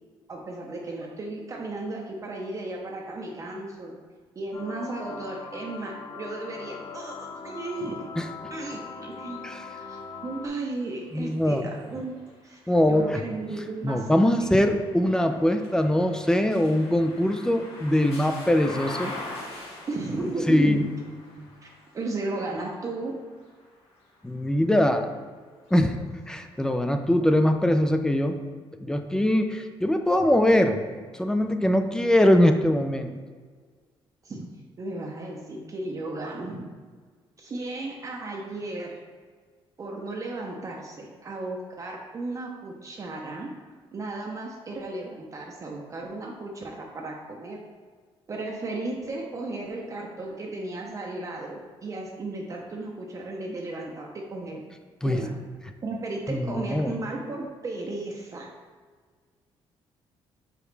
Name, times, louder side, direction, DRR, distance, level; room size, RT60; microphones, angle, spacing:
voice 1, 0.3-4.0 4.4-8.1 8.5-14.6 19.9-20.9 21.6-21.7 21.9-23.2 34.2-34.5 34.8-36.7 37.4-39.0 39.8-43.5 43.9-47.6 48.3-54.6 55.0-55.3 55.8-58.5, right 2 dB, 35° right, -1 dB, 0.7 m, -34 dB
sound 1, 4.5-10.5, left 5 dB, 45° left, 0.7 m, -40 dB
sound 2, 9.0-25.0 25.5-26.8, left 2 dB, 80° left, 1.4 m, -45 dB
voice 2, 11.1-11.7 12.7-13.2 13.8-19.1 20.5-20.9 21.4-21.5 24.2-25.1 25.7-26.0 26.3-28.4 28.8-30.8 31.2-33.1 55.0-55.2 56.3-57.0, left 1 dB, 5° left, 6 dB, 0.4 m, -22 dB
6.0 x 5.0 x 3.3 m, 1.6 s
cardioid pair, 135°, 10 cm